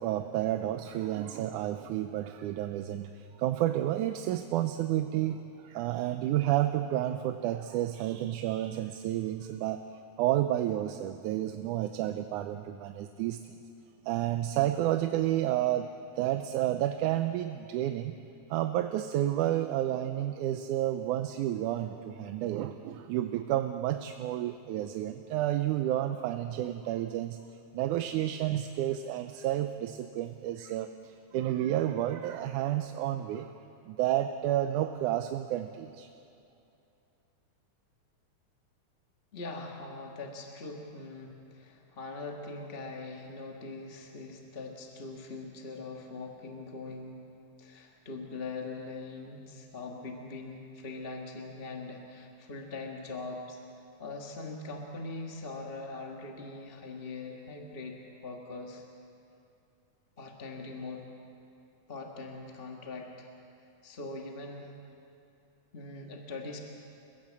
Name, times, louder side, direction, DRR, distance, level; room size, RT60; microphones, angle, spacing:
voice 1, 0.0-9.8 10.2-13.6 14.1-18.1 18.5-27.4 27.7-33.5 33.9-36.1, right 13 dB, 85° right, 8 dB, 2.2 m, -30 dB
voice 2, 39.3-47.2 47.6-53.6 54.0-58.8 60.2-61.1 61.9-63.3 63.8-64.7 65.7-66.6, left 3 dB, 30° left, 1 dB, 1.1 m, -42 dB
30.0 x 16.5 x 7.5 m, 2.7 s
omnidirectional pair, 3.5 m